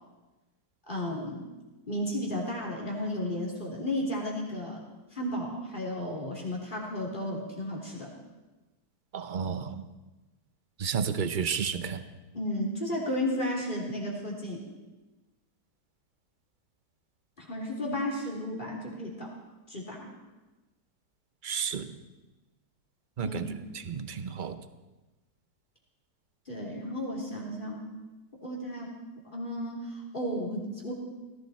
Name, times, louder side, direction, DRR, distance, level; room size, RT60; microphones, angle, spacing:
voice 1, 0.9-1.4 1.9-4.8 5.1-8.1 12.3-14.6 17.4-19.3 19.7-20.1 23.2-23.4 26.5-27.8 28.4-28.9 29.3-30.9, left 1 dB, 30° left, -3 dB, 3.5 m, -33 dB
voice 2, 9.1-9.9 10.8-12.0 21.4-22.0 23.2-23.5 23.8-24.6, right 6 dB, 50° right, 11 dB, 0.6 m, -31 dB
18.5 x 15.0 x 4.3 m, 1.1 s
omnidirectional pair, 1.8 m